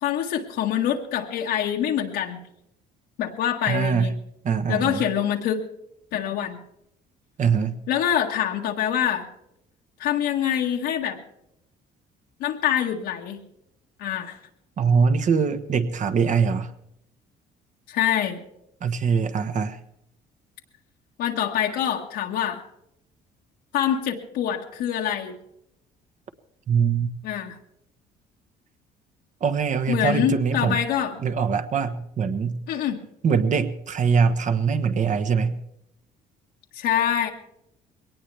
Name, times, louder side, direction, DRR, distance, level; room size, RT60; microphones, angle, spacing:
voice 1, 0.0-2.4 3.2-4.2 4.7-5.6 6.1-6.6 7.9-9.2 10.0-11.2 12.4-13.4 14.0-14.4 17.9-18.4 21.2-22.6 23.7-25.4 27.2-27.6 29.9-31.2 32.7-33.0 36.7-37.3, left 10 dB, 85° left, 0 dB, 1.7 m, -25 dB
voice 2, 3.7-4.1 4.4-5.0 7.4-7.8 14.8-16.7 18.8-19.8 26.7-27.1 29.4-30.8 31.2-32.6 33.2-35.6, right 6 dB, 45° right, 9 dB, 1.3 m, -22 dB
21.5 x 18.5 x 3.4 m, 0.79 s
cardioid pair, 110°, 17 cm